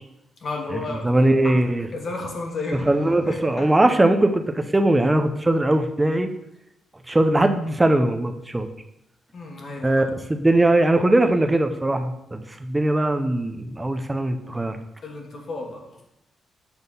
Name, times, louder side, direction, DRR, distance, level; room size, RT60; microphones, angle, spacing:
voice 1, 0.4-1.1 1.4-2.9 3.2-3.7 9.3-9.9 15.0-15.9, left 3 dB, 40° left, 1 dB, 1.3 m, -32 dB
voice 2, 1.0-1.9 2.9-6.3 7.1-8.7 9.8-14.8, right 1 dB, 10° right, 7 dB, 0.5 m, -20 dB
7.1 x 4.1 x 5.4 m, 0.83 s
wide cardioid pair, 170°, 0 cm